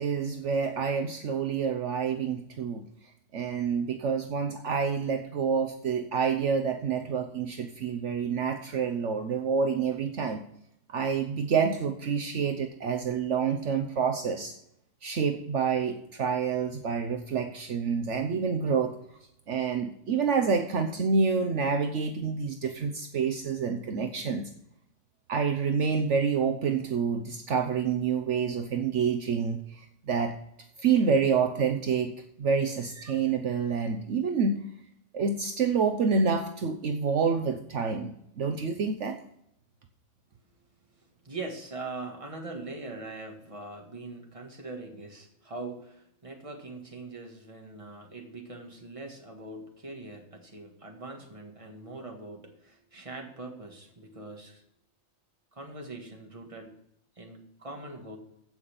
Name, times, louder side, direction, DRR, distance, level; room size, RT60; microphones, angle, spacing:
voice 1, 0.0-2.8 3.3-10.4 10.9-14.6 15.0-19.0 19.5-24.5 25.3-30.4 30.8-34.6 35.1-39.2, right 5 dB, 65° right, 6 dB, 1.1 m, -28 dB
voice 2, 41.0-54.6 55.5-56.8 57.2-58.2, right 3 dB, 25° right, 3 dB, 1.7 m, -42 dB
15.5 x 5.6 x 6.9 m, 0.76 s
omnidirectional pair, 1.4 m